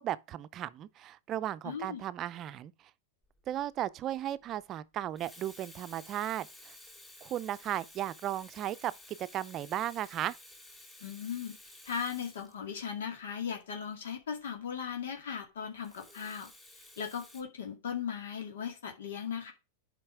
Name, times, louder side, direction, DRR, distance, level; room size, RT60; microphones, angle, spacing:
voice 1, 0.0-2.7 3.5-6.7 7.2-10.4, right 12 dB, 35° right, 0.5 m, -36 dB
voice 2, 1.6-2.0 11.0-11.6 11.9-16.5 17.0-19.5, left 7 dB, 80° left, 2.1 m, -38 dB
Water tap faucet / Sink (filling or washing), 3.4-3.6 4.9-13.1 15.8-17.4, left 1 dB, 10° left, 3.1 m, -54 dB
8.7 x 5.3 x 4.8 m
hypercardioid pair, 110°, 0 cm